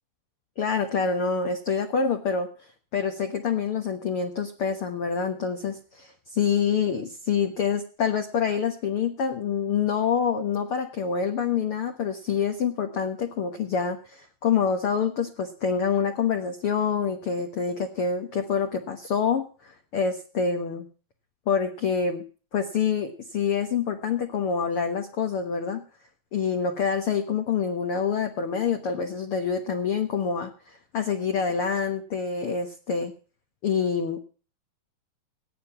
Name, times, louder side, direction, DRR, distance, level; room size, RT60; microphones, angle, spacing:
voice 1, 0.6-2.5 2.9-20.8 21.5-22.2 22.5-25.8 26.3-33.1 33.6-34.2, left 6 dB, 55° left, 5 dB, 1.7 m, -26 dB
17.0 x 9.5 x 5.7 m, 0.38 s
omnidirectional pair, 4.1 m